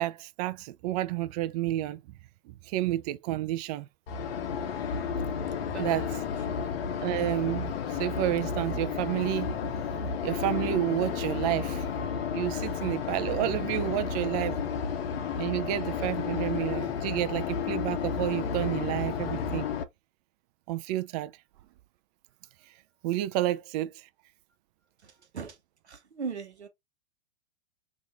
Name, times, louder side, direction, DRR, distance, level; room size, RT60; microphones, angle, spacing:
voice 1, 0.0-2.0 2.5-3.9 5.8-6.2 7.0-11.9 12.3-14.6 15.4-19.7 20.7-21.3 23.0-23.9, right 14 dB, 40° right, 0.4 m, -30 dB
sound 1, 4.1-19.8, left 6 dB, 65° left, 0.7 m, -32 dB
voice 2, 25.9-26.7, right 5 dB, 90° right, 1.0 m, -37 dB
2.9 x 2.6 x 3.8 m
hypercardioid pair, 110°, 33 cm